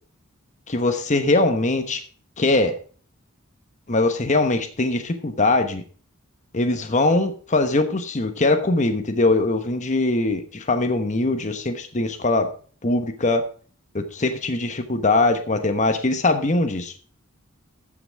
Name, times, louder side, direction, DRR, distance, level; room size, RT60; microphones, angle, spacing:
voice 1, 0.7-2.0 2.4-2.7 3.9-5.8 6.5-12.5 12.8-13.5 13.9-16.9, left 2 dB, 35° left, 7 dB, 1.1 m, -21 dB
14.0 x 6.0 x 4.6 m, 0.42 s
head